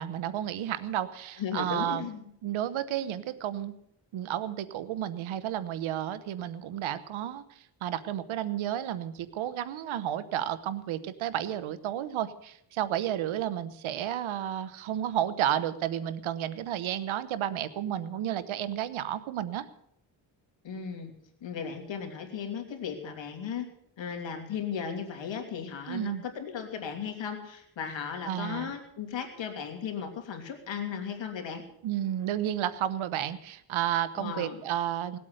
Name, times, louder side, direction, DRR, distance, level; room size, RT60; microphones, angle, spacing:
voice 1, 0.0-2.1 2.4-3.7 4.1-19.7 25.9-26.2 28.3-28.7 31.8-35.2, right 11 dB, 90° right, 14 dB, 1.1 m, -32 dB
voice 2, 1.4-2.3 20.6-21.1 21.4-23.7 24.0-31.6 34.1-34.6, left 7 dB, 70° left, 4 dB, 3.1 m, -36 dB
18.5 x 8.4 x 7.9 m, 0.72 s
cardioid pair, 80°, 46 cm